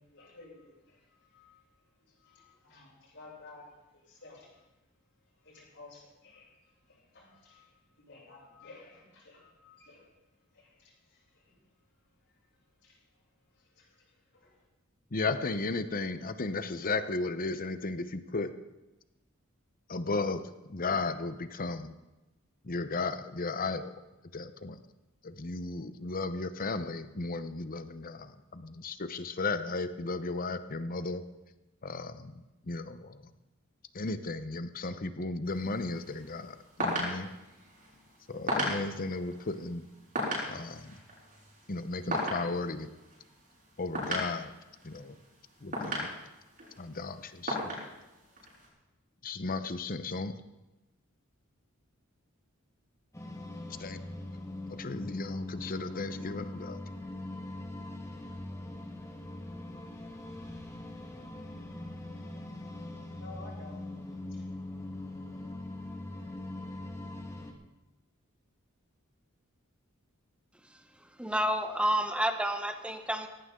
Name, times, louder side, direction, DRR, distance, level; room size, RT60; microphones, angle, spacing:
voice 1, 0.0-1.6 2.0-4.7 5.4-10.2 10.5-11.6 12.3-12.4 12.8-13.0 13.5-14.6 63.1-63.8 64.3-64.5, left 3 dB, 60° left, -8 dB, 6.9 m, -54 dB
voice 2, 15.1-18.5 19.9-20.4 20.7-21.9 22.6-23.9 24.3-24.8 25.2-31.2 31.8-33.2 33.9-37.3 38.3-39.9 40.5-41.0 41.7-42.9 43.8-44.5 44.8-45.2 45.6-46.1 46.8-47.7 49.2-50.3 53.8-54.0 54.7-56.8, left 3 dB, 45° left, 11 dB, 0.9 m, -35 dB
sound 1, 35.4-48.7, equal, 45° right, 6.2 m, -38 dB
sound 2, 53.1-67.5, left 1 dB, 15° left, 1.8 m, -42 dB
voice 3, 71.2-73.3, equal, 5° right, 7 dB, 1.0 m, -29 dB
18.0 x 16.5 x 3.8 m, 1.0 s
head